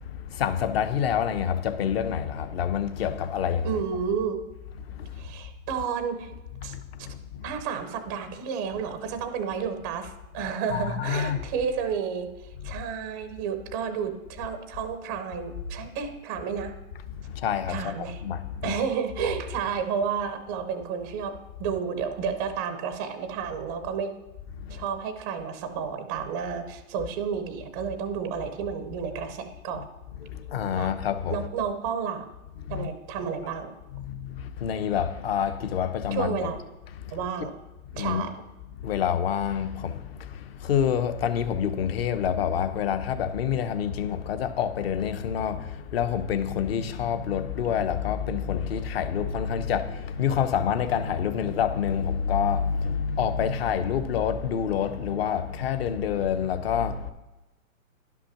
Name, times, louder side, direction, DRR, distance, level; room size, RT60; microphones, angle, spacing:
voice 1, 0.0-3.8 4.8-5.1 6.5-7.6 10.7-11.4 12.6-12.8 17.2-18.8 19.2-19.4 24.6-24.9 29.7-29.8 30.2-31.5 32.6-32.9 33.9-36.5 36.9-37.5 37.9-38.2 38.8-57.1, left 8 dB, 45° left, 0.9 m, -28 dB
voice 2, 3.6-4.4 5.2-6.3 6.6-6.7 7.4-16.7 17.7-18.2 18.6-24.1 24.7-29.9 30.8-30.9 31.3-32.3 32.7-33.7 36.1-36.6 37.1-37.5 38.0-38.3, right 7 dB, 15° right, 0.5 m, -31 dB
11.0 x 5.9 x 5.8 m
hypercardioid pair, 145°, 42 cm